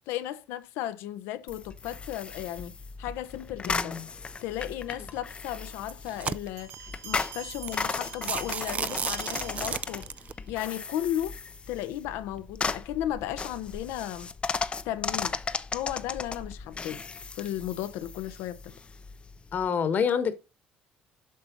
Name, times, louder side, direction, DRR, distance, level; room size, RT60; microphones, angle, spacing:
voice 1, 0.0-2.7 3.0-4.0 4.4-6.7 7.0-10.0 10.5-11.3 11.7-14.3 14.8-15.4 15.7-17.0 17.4-18.6, left 12 dB, 85° left, 0.8 m, -34 dB
sound 1, 1.5-19.7, left 4 dB, 25° left, 0.6 m, -36 dB
voice 2, 3.6-4.1 19.5-20.3, left 7 dB, 45° left, 1.4 m, -27 dB
sound 2, 4.9-5.2 5.8-6.8 7.3-7.4 7.7-7.8 8.1-10.3, right 6 dB, 35° right, 0.4 m, -33 dB
Bell, 6.6-10.3, right 7 dB, 75° right, 3.1 m, -44 dB
7.5 x 5.7 x 4.0 m
cardioid pair, 100°, 4 cm